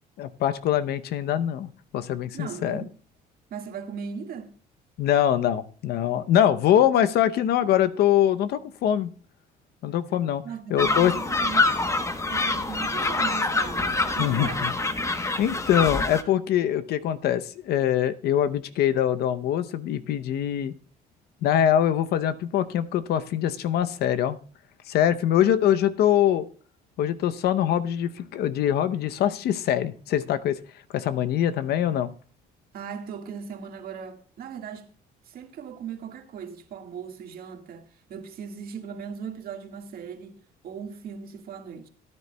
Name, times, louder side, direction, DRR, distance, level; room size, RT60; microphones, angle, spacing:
voice 1, 0.2-2.8 5.0-9.1 9.8-10.4 10.7-11.1 14.2-14.7 15.4-20.7 21.4-24.4 24.9-26.5 27.0-30.6 30.9-32.1, left 10 dB, 70° left, 0.7 m, -23 dB
voice 2, 2.3-2.9 3.5-4.5 10.4-11.8 12.3-14.8 32.7-34.9 35.2-40.4 40.6-41.9, right 7 dB, 60° right, 1.7 m, -38 dB
sound 1, 10.8-16.2, left 3 dB, 15° left, 0.9 m, -25 dB
17.5 x 9.7 x 2.2 m
cardioid pair, 110°, 17 cm